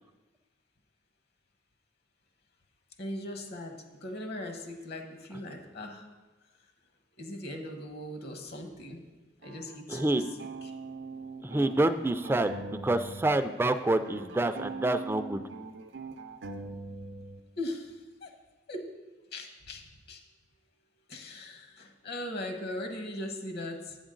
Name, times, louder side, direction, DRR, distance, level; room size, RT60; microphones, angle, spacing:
voice 1, 3.0-6.1 7.2-9.0 9.4-10.0 10.6-10.7 17.6-18.3 18.7-18.9 19.3-20.2 21.1-24.0, left 1 dB, 60° left, 4 dB, 1.1 m, -39 dB
sound 1, 9.4-13.3 13.6-17.4, right 3 dB, 80° right, 0.6 m, -42 dB
voice 2, 9.9-10.3 11.4-15.4, right 2 dB, 15° right, 10 dB, 0.3 m, -27 dB
8.4 x 7.1 x 3.8 m, 1.2 s
head